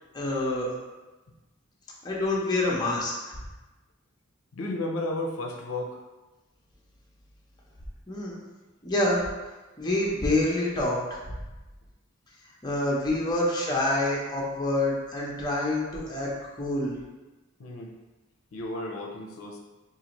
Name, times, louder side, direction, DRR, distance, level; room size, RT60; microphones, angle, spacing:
voice 1, 0.1-0.7 2.0-3.3 8.1-8.4 8.8-9.2 9.8-11.4 12.6-16.3 16.6-16.9, left 1 dB, 20° left, -4 dB, 0.7 m, -27 dB
voice 2, 4.5-6.0 13.1-13.2 17.6-17.9 18.5-19.6, left 2 dB, 80° left, 0 dB, 0.5 m, -33 dB
3.9 x 2.5 x 2.9 m, 1.1 s
head